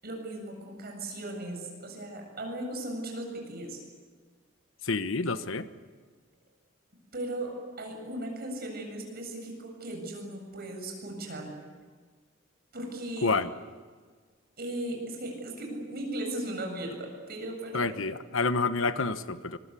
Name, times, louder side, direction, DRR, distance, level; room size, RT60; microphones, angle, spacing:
voice 1, 0.0-3.8 7.1-11.5 12.7-13.4 14.6-18.0, right 1 dB, 50° right, 2 dB, 7.8 m, -37 dB
voice 2, 4.8-5.7 13.2-13.5 17.7-19.6, left 3 dB, 85° left, 11 dB, 1.2 m, -28 dB
25.0 x 23.0 x 8.5 m, 1.5 s
head